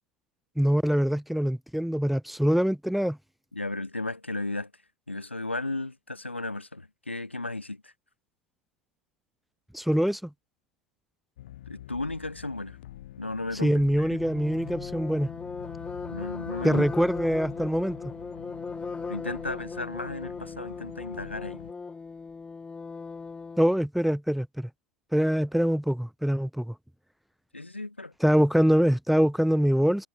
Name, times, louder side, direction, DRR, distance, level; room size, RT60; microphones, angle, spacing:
voice 1, 0.6-3.2 9.7-10.3 13.6-15.3 16.6-18.0 23.6-24.7 25.1-26.7 28.2-30.1, equal, ahead, 1.0 m, -24 dB
voice 2, 3.5-4.7 5.1-7.9 11.7-12.8 13.2-14.1 16.1-16.9 19.1-21.6 27.5-28.1, left 2 dB, 85° left, 3.5 m, -35 dB
sound 1, 11.4-21.7, left 13 dB, 65° left, 5.6 m, -45 dB
sound 2, 14.1-23.8, left 4 dB, 15° left, 3.3 m, -38 dB
figure-of-eight pair, 75°, 6 cm